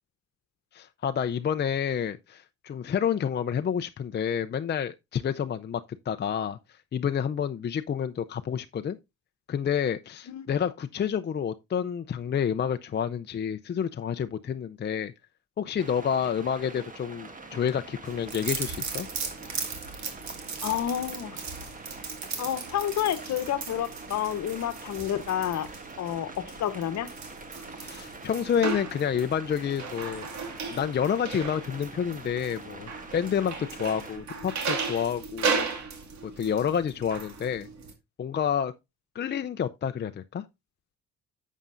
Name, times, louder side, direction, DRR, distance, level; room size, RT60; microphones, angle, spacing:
voice 1, 0.7-5.8 6.1-6.6 6.9-9.0 9.5-15.1 15.6-19.1 27.8-30.3 30.7-35.7 36.2-37.7 38.2-38.7 39.1-40.4, left 8 dB, 35° left, 0.5 m, -29 dB
sound 1, 15.8-34.2, right 3 dB, 25° right, 1.5 m, -45 dB
sound 2, 18.1-37.9, right 5 dB, 65° right, 2.3 m, -36 dB
voice 2, 20.6-21.4 22.4-25.7 26.0-27.1, left 10 dB, 65° left, 1.1 m, -29 dB
11.0 x 7.4 x 2.5 m
cardioid pair, 90°, 30 cm